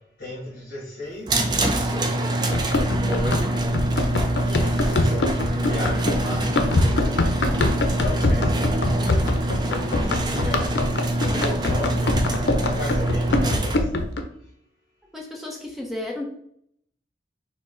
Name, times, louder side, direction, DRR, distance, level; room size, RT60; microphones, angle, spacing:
voice 1, 0.2-2.1 3.0-7.4 7.7-9.3 9.6-10.8 11.3-13.8, left 1 dB, 50° left, -8 dB, 1.6 m, -35 dB
sound 1, 1.3-13.8, right 1 dB, 25° right, 0.4 m, -25 dB
Run, 2.5-14.2, left 2 dB, 80° left, 0.6 m, -24 dB
voice 2, 15.1-16.2, left 1 dB, ahead, -1 dB, 0.9 m, -33 dB
6.2 x 2.2 x 3.7 m, 0.68 s
head